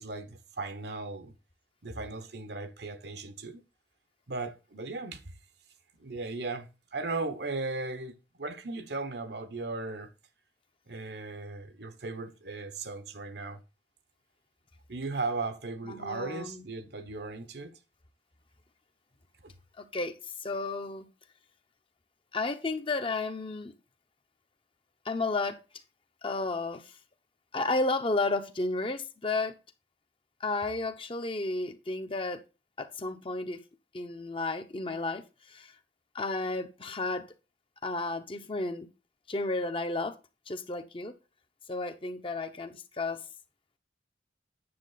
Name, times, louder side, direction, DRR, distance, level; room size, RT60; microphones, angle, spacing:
voice 1, 0.0-1.3 1.8-3.6 4.3-5.3 6.0-10.1 10.9-13.6 14.9-17.8 19.4-19.5, right 3 dB, 65° right, 1.1 m, -37 dB
voice 2, 15.9-16.6 19.8-20.1 20.4-21.1 22.3-23.7 25.0-25.6 26.2-27.0 27.5-29.6 30.4-32.4 32.8-33.6 33.9-35.2 35.5-35.7 36.1-37.3 37.8-38.9 39.3-40.1 40.5-41.1 41.7-43.2, left 3 dB, 30° left, 0.9 m, -32 dB
9.7 x 7.3 x 4.0 m
head